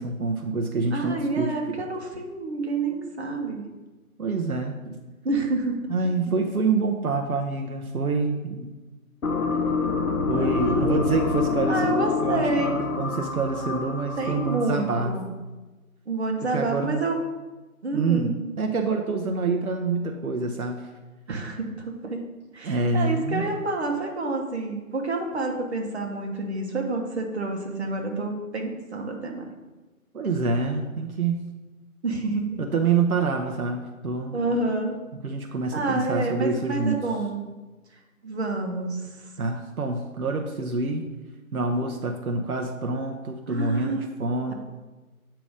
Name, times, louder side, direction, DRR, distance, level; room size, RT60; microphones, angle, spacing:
voice 1, 0.0-1.9 4.2-5.0 5.9-8.7 10.3-15.1 16.5-17.1 17.9-20.8 22.6-23.5 30.1-31.4 32.6-34.4 35.2-37.0 39.4-41.0 41.5-44.5, right 3 dB, 80° right, 3 dB, 0.8 m, -27 dB
voice 2, 0.9-3.6 5.2-5.8 10.3-10.9 11.7-12.7 13.7-13.8 14.2-15.2 16.1-17.2 17.8-18.3 21.3-22.2 22.5-29.5 32.0-32.5 34.3-35.0 35.7-37.5 38.2-39.3 43.5-44.0, right 3 dB, 50° right, 2 dB, 1.1 m, -28 dB
sound 1, 9.2-14.9, left 4 dB, 75° left, 0.8 m, -26 dB
8.6 x 3.0 x 5.0 m, 1.2 s
figure-of-eight pair, 155°, 43 cm